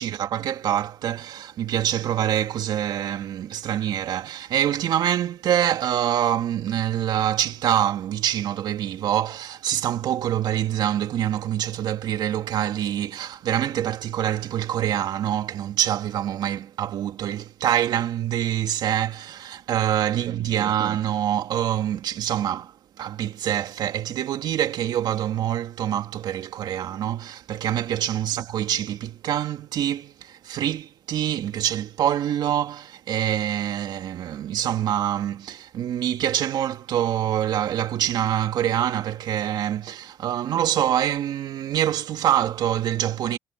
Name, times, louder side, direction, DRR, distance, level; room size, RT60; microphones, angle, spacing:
voice 1, 0.0-22.7 23.0-43.4, right 11 dB, 65° right, 2.2 m, -25 dB
cardioid pair, 145°, 8 cm